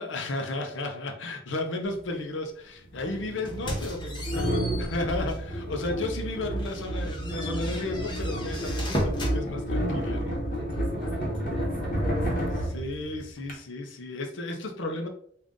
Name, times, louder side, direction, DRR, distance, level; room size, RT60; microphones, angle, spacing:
voice 1, 0.0-10.4 12.5-15.1, left 2 dB, 75° left, 5 dB, 0.7 m, -34 dB
sound 1, 1.9-2.0 2.9-13.5, equal, 45° left, 1.0 m, -30 dB
sound 2, 3.5-5.5 6.0-6.1 6.6-9.4, equal, 25° left, 0.8 m, -35 dB
voice 2, 5.8-6.1 10.5-12.8, right 1 dB, 25° right, -1 dB, 0.9 m, -46 dB
3.7 x 2.5 x 3.6 m, 0.64 s
head